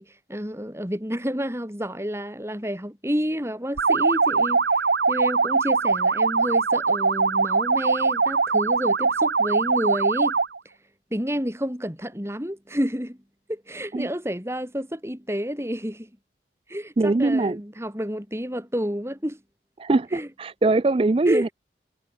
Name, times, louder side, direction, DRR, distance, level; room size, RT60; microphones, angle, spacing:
voice 1, 0.0-10.4 11.1-13.2 13.5-16.1 16.7-19.4 20.1-20.3 21.3-21.5, equal, 15° right, 6.2 m, -30 dB
sound 1, 3.8-10.6, right 4 dB, 70° right, 1.2 m, -22 dB
voice 2, 17.0-17.6 19.8-21.5, right 2 dB, 30° right, 0.4 m, -22 dB
head